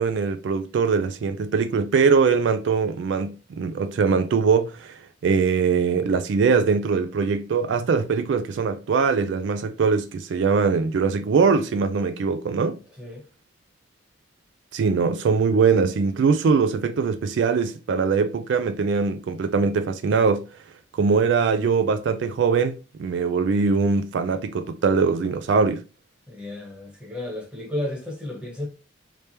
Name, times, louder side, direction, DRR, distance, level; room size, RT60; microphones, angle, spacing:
voice 1, 0.0-12.8 14.7-20.5 21.0-25.8, right 5 dB, 65° right, 0.3 m, -22 dB
voice 2, 26.3-28.7, left 1 dB, 5° right, 1.1 m, -33 dB
3.3 x 3.3 x 2.8 m
head